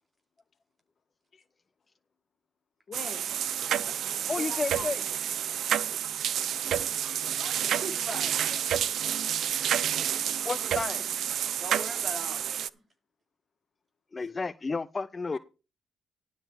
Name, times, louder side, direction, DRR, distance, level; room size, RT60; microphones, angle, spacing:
voice 1, 2.9-3.3 3.8-4.9 7.4-8.2 8.5-8.6 15.3-15.4, left 5 dB, 45° left, 1.7 m, -45 dB
sound 1, 2.9-12.7, right 9 dB, 70° right, 0.6 m, -29 dB
voice 2, 4.3-5.0 10.4-11.1 14.1-15.4, left 4 dB, 30° left, 0.5 m, -32 dB
voice 3, 7.6-8.5 11.6-12.8, right 2 dB, 30° right, 4.2 m, -40 dB
12.0 x 4.7 x 7.1 m
cardioid pair, 90°, 0 cm